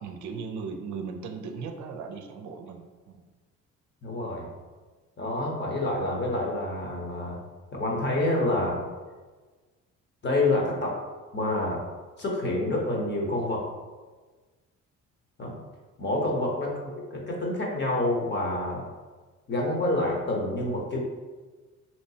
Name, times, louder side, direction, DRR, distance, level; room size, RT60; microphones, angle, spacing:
voice 1, 0.0-3.2 16.2-16.4, right 5 dB, 75° right, 5 dB, 0.5 m, -37 dB
voice 2, 4.0-4.5 5.2-7.4 7.7-8.8 10.2-11.0 11.3-11.8 12.2-13.7 15.4-15.5 16.0-18.9 19.5-21.0, left 2 dB, 35° left, -2 dB, 1.0 m, -27 dB
3.2 x 3.0 x 2.7 m, 1.3 s
cardioid pair, 90°, 30 cm